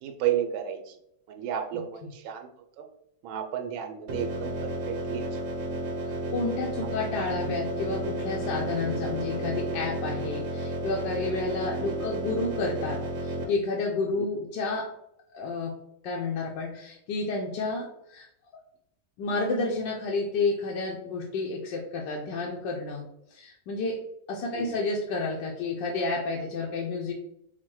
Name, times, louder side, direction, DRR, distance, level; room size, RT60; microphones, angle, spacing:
voice 1, 0.0-1.0 1.3-2.5 2.8-2.9 3.2-5.4 6.9-7.3 11.8-12.1 24.6-24.8, right 10 dB, 85° right, 6 dB, 1.4 m, -33 dB
sound 1, 4.1-13.4, right 1 dB, 70° right, 1.5 m, -32 dB
voice 2, 6.3-14.9 15.3-15.8 16.0-18.3 19.2-23.1 23.3-24.0 24.3-27.1, left 3 dB, 70° left, -2 dB, 1.2 m, -30 dB
4.4 x 2.2 x 4.5 m, 0.76 s
omnidirectional pair, 2.1 m